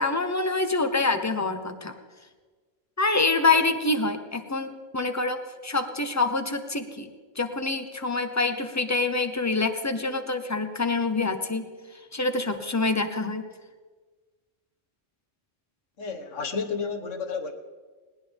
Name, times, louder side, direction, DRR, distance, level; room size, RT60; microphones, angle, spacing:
voice 1, 0.0-1.9 3.0-7.1 7.4-11.7 12.1-13.4, left 3 dB, 15° left, 8 dB, 0.9 m, -26 dB
voice 2, 16.0-17.5, left 5 dB, 75° left, 7 dB, 1.6 m, -31 dB
20.0 x 19.0 x 3.6 m, 1.4 s
omnidirectional pair, 1.3 m